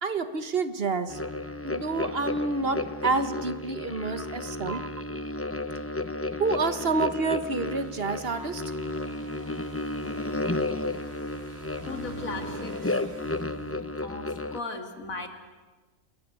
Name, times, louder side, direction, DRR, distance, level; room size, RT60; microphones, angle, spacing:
voice 1, 0.0-1.2 1.6-4.9 6.4-8.7, right 4 dB, 45° right, 11 dB, 1.4 m, -28 dB
sound 1, 1.1-14.6, left 2 dB, 15° left, 0.7 m, -33 dB
voice 2, 4.2-4.6 11.8-13.1 13.3-15.3, left 3 dB, 90° left, 5 dB, 3.2 m, -39 dB
sound 2, 7.4-14.3, right 4 dB, 80° right, 2.5 m, -49 dB
29.0 x 21.5 x 8.2 m, 1.3 s
omnidirectional pair, 1.4 m